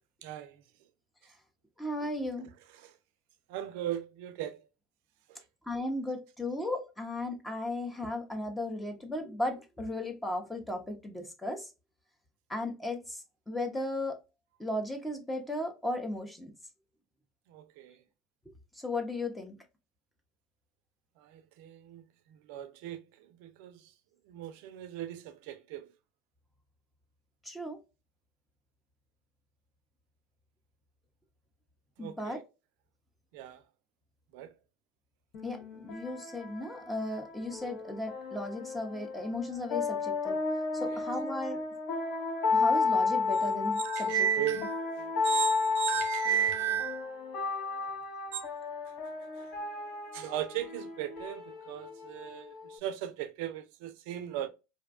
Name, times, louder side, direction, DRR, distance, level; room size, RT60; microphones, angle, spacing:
voice 1, 0.2-0.6 2.7-2.9 3.5-4.6 5.3-5.4 17.5-18.0 21.2-22.0 22.3-23.9 24.3-25.9 32.0-32.4 33.3-33.6 34.3-34.5 40.9-41.0 43.8-47.3 48.3-48.5 49.4-49.5 50.1-54.5, right 10 dB, 70° right, 0.4 m, -36 dB
voice 2, 1.8-2.5 5.7-11.7 12.5-14.2 14.6-16.5 18.8-19.6 27.4-27.8 32.0-32.4 35.4-40.4 40.7-41.6 42.5-44.1 44.6-44.7, left 1 dB, 10° left, 0.6 m, -36 dB
sound 1, 35.3-52.8, left 4 dB, 55° left, 0.7 m, -33 dB
2.5 x 2.2 x 2.4 m
hypercardioid pair, 90°, 0 cm